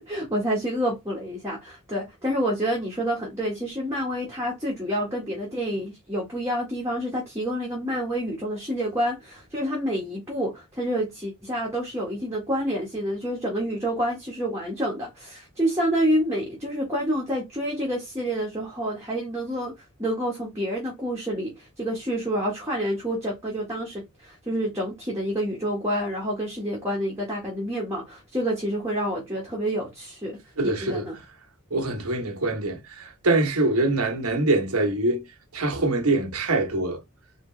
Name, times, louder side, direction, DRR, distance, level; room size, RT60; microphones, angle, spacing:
voice 1, 0.0-19.7 20.0-31.2, equal, 15° right, 1.7 m, -28 dB
voice 2, 30.6-31.1 31.7-35.2 35.5-37.0, right 2 dB, 90° right, 1.5 m, -24 dB
4.5 x 3.4 x 3.4 m
head